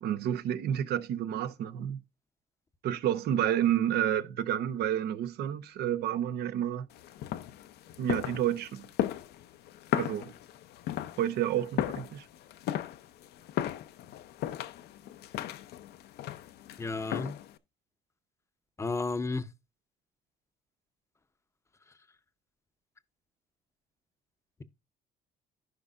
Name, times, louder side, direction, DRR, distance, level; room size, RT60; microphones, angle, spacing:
voice 1, 0.0-2.0 2.8-6.9 8.0-8.8 9.9-10.3 11.2-12.2, right 10 dB, 70° right, 0.8 m, -30 dB
sound 1, 6.9-17.6, left 12 dB, 75° left, 0.6 m, -36 dB
voice 2, 16.8-17.3 18.8-19.5, left 3 dB, 15° left, 0.7 m, -32 dB
15.0 x 5.3 x 2.5 m
cardioid pair, 110°, 17 cm